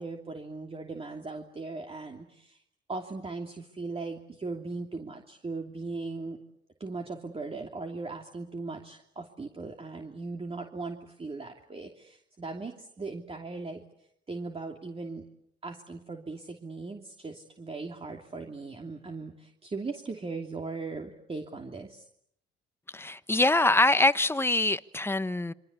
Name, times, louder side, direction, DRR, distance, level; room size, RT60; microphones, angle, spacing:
voice 1, 0.0-2.6 2.9-6.4 6.8-15.2 15.6-22.1, right 3 dB, 30° right, 3.0 m, -38 dB
voice 2, 22.9-25.5, left 2 dB, 10° left, 1.1 m, -24 dB
27.5 x 25.0 x 8.4 m
cardioid pair, 90°, 20 cm